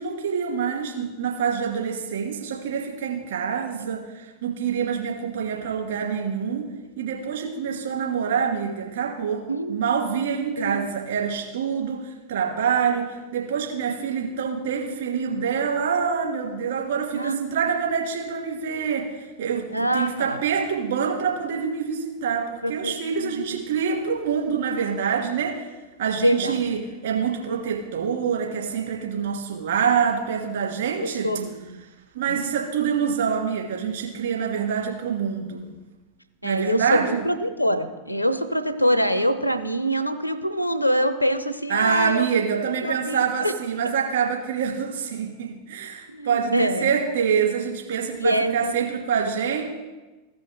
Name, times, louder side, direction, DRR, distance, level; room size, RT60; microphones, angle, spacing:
voice 1, 0.0-6.7 7.0-9.4 9.7-12.0 12.3-25.6 26.0-31.3 32.1-35.6 36.4-37.2 41.7-49.6, right 7 dB, 60° right, -1 dB, 2.4 m, -26 dB
voice 2, 9.5-9.8 10.6-10.9 17.1-17.7 19.7-20.4 22.6-23.6 26.2-26.5 31.2-31.8 32.3-32.4 36.4-42.3 42.8-43.5 46.1-46.9 48.2-48.5, equal, 90° left, 12 dB, 0.7 m, -24 dB
15.0 x 5.3 x 3.7 m, 1.2 s
figure-of-eight pair, 90°, 0 cm